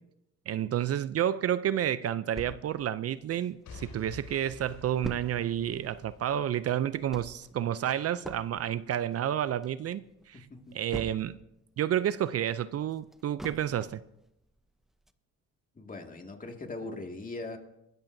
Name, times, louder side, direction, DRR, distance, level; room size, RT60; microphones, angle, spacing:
voice 1, 0.5-10.5 10.7-11.4 11.8-14.0, right 10 dB, 55° right, 0.5 m, -30 dB
sound 1, 2.4-3.9 4.3-4.4 4.6-11.6 12.0-14.1 14.6-14.7 15.1-15.2, equal, ahead, 0.6 m, -45 dB
Boom / Shatter / Crushing, 3.6-7.7 8.2-8.3, left 3 dB, 65° left, 3.7 m, -50 dB
voice 2, 10.3-10.8 15.8-17.6, left 2 dB, 25° left, 2.1 m, -40 dB
22.0 x 13.5 x 2.7 m
cardioid pair, 90°, 30 cm